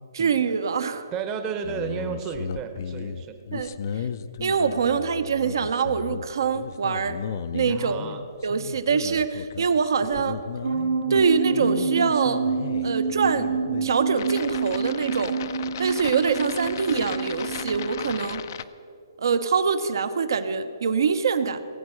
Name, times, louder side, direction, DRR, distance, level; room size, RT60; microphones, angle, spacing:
voice 1, 0.1-1.1 3.5-4.0 4.4-7.2 7.5-8.0 8.4-10.4 11.1-12.4 12.8-13.5 13.8-15.4 15.8-18.4 19.2-21.6, right 5 dB, 70° right, 10 dB, 0.7 m, -24 dB
voice 2, 1.1-3.4 7.7-8.2, right 6 dB, 20° right, 7 dB, 0.8 m, -32 dB
sound 1, 1.6-18.6, left 7 dB, 50° left, 0.5 m, -36 dB
sound 2, 10.6-18.1, right 5 dB, 90° right, 1.4 m, -28 dB
17.0 x 8.1 x 6.3 m, 2.4 s
hypercardioid pair, 150°, 2 cm